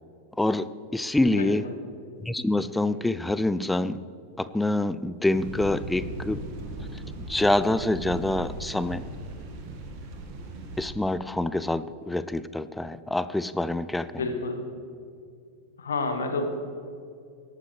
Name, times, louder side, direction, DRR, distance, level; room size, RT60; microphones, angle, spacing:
voice 1, 0.4-0.7 0.9-1.6 2.2-4.0 4.4-6.4 7.3-9.0 10.8-14.4, left 2 dB, 5° left, 15 dB, 0.4 m, -26 dB
sound 1, 5.3-10.9, right 2 dB, 45° right, 1.8 m, -38 dB
voice 2, 14.2-14.6 15.8-16.5, left 3 dB, 70° left, 6 dB, 1.6 m, -29 dB
18.0 x 12.5 x 3.3 m, 2.4 s
figure-of-eight pair, 90°, 0 cm